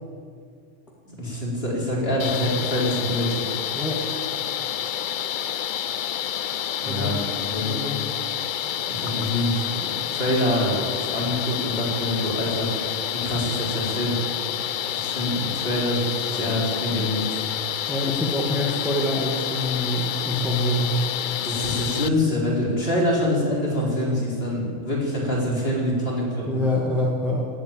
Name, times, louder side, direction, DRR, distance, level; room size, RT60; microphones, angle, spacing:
voice 1, 1.1-3.5 6.8-7.7 8.8-10.8 11.1-12.7 13.1-14.2 14.9-17.4 21.3-26.6, left 1 dB, 45° left, -4 dB, 4.4 m, -25 dB
sound 1, 2.2-22.1, left 10 dB, 70° left, 0.4 m, -29 dB
voice 2, 6.8-7.2 7.6-8.0 14.8-15.1 17.9-21.0 26.5-27.5, left 1 dB, ahead, -2 dB, 1.8 m, -26 dB
18.5 x 8.3 x 8.9 m, 2.2 s
omnidirectional pair, 1.4 m